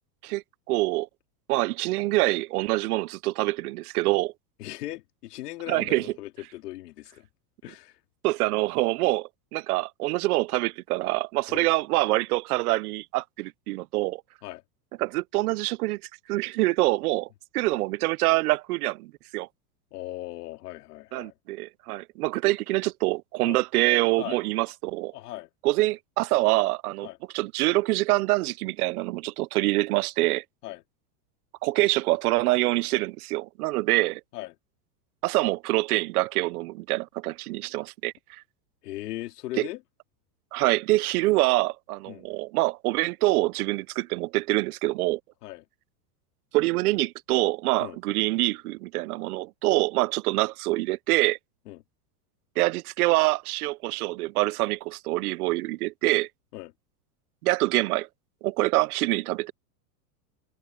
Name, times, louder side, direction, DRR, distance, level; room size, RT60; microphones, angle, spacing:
voice 1, 0.2-1.1 1.5-4.3 5.7-6.1 8.2-14.2 15.0-16.0 16.3-17.3 17.5-19.5 21.1-25.1 25.6-27.1 27.3-30.4 31.6-34.2 35.2-38.4 39.6-39.7 40.5-45.2 46.5-51.4 52.6-56.3 57.4-58.1 58.4-59.5, right 20 dB, 70° right, 0.6 m, -25 dB
voice 2, 4.6-7.3 7.6-8.0 11.5-11.7 14.4-14.6 19.9-21.3 23.4-23.6 24.2-24.4 25.1-25.5 27.0-27.2 30.6-30.8 34.3-34.5 38.8-39.8 42.1-42.3 45.4-45.6 47.8-48.0 51.7-51.8 56.5-56.7, left 16 dB, 75° left, 2.9 m, -38 dB
supercardioid pair, 165°, 47 cm